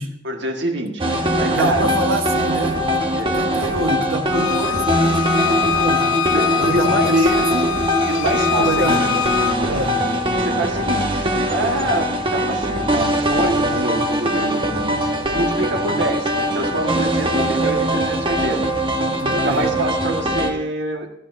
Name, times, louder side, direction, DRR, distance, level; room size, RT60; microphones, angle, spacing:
voice 1, 0.2-1.9 3.1-3.7 6.3-7.2 8.1-9.1 9.6-9.9 10.3-18.6 19.3-21.1, right 1 dB, 60° right, 2 dB, 1.6 m, -26 dB
sound 1, 1.0-20.5, equal, 25° right, 1.1 m, -21 dB
voice 2, 1.5-2.9 3.3-6.1 6.6-7.7 8.6-9.0 9.7-10.0 19.2-19.7, right 1 dB, 85° right, 4 dB, 1.3 m, -25 dB
Bowed string instrument, 4.3-9.6, left 9 dB, 85° left, 0.6 m, -24 dB
18.0 x 13.0 x 2.7 m, 0.72 s
head